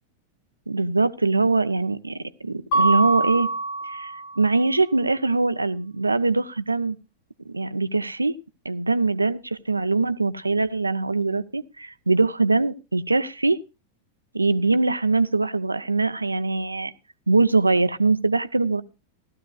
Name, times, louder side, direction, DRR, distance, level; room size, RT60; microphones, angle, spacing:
voice 1, 0.7-3.5 3.8-7.0 7.5-8.3 8.6-13.6 14.3-16.9 17.3-18.8, right 3 dB, 80° right, 15 dB, 0.6 m, -22 dB
Mallet percussion, 2.7-4.5, right 2 dB, 45° left, 1.1 m, -24 dB
16.5 x 13.5 x 2.3 m, 0.29 s
figure-of-eight pair, 90°, 0 cm